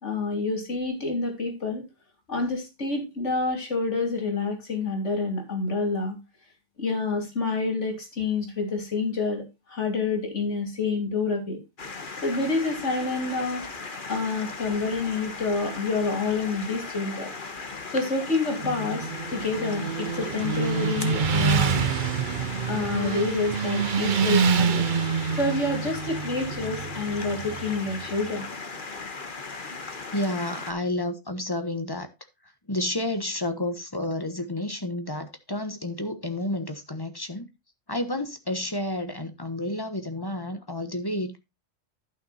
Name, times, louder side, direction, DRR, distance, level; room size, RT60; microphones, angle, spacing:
voice 1, 0.0-1.8 2.3-6.2 6.8-11.6 12.2-13.6 14.1-17.3 17.9-21.9 22.7-24.9 25.4-28.5, left 3 dB, 75° left, 3.3 m, -28 dB
sound 1, 11.8-30.7, left 4 dB, 45° left, 1.4 m, -37 dB
Motorcycle, 18.5-28.3, right 6 dB, 50° right, 0.8 m, -27 dB
voice 2, 30.1-32.1 32.7-37.5 37.9-41.4, left 1 dB, 20° left, 1.2 m, -30 dB
11.5 x 6.3 x 4.2 m
omnidirectional pair, 1.2 m